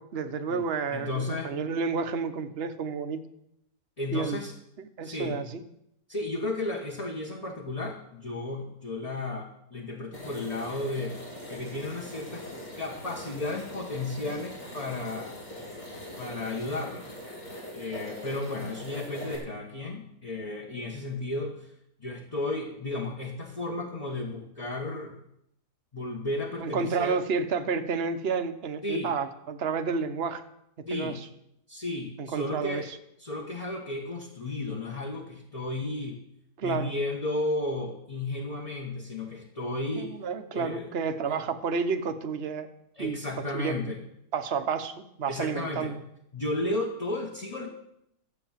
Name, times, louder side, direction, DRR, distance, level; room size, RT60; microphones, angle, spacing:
voice 1, 0.0-3.2 4.1-4.4 4.8-5.6 26.6-30.4 30.9-31.1 32.2-32.8 36.6-36.9 39.9-42.7 43.0-43.2 43.5-43.9 44.3-46.0, right 5 dB, 45° right, 8 dB, 1.1 m, -30 dB
voice 2, 0.9-1.5 4.0-4.5 5.0-5.4 6.1-11.2 11.5-12.5 12.8-15.3 16.2-17.1 17.7-21.7 22.0-25.2 25.9-27.2 28.8-29.1 30.9-31.2 31.7-32.9 33.2-36.2 36.6-40.2 40.5-40.9 41.3-41.4 43.0-44.0 45.3-45.9 46.3-47.7, left 2 dB, 25° left, -1 dB, 1.3 m, -33 dB
sound 1, 10.1-19.4, left 1 dB, 75° left, 4.9 m, -41 dB
13.0 x 8.1 x 7.4 m, 0.78 s
omnidirectional pair, 1.8 m